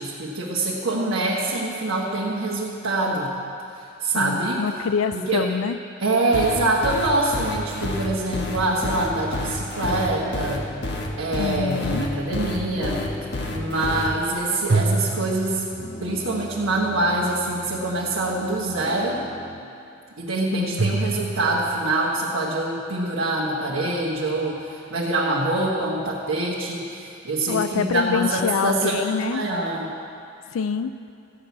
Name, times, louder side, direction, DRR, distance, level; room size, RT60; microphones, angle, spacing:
voice 1, 0.0-3.3 3.7-4.7 5.1-5.5 6.0-10.7 11.2-13.0 13.5-15.6 16.0-19.2 20.2-29.9, right 2 dB, 85° right, -5 dB, 1.5 m, -25 dB
voice 2, 4.2-5.8 11.4-12.1 20.5-20.9 27.5-29.4 30.5-30.9, left 6 dB, 85° left, 10 dB, 0.4 m, -25 dB
sound 1, 6.3-14.1, left 2 dB, 55° left, 1.2 m, -29 dB
sound 2, 8.6-19.6, left 1 dB, 25° left, 0.6 m, -41 dB
sound 3, 9.0-10.1 14.7-16.2 20.8-21.9, right 3 dB, 55° right, 0.8 m, -27 dB
14.0 x 6.2 x 8.4 m, 2.5 s
head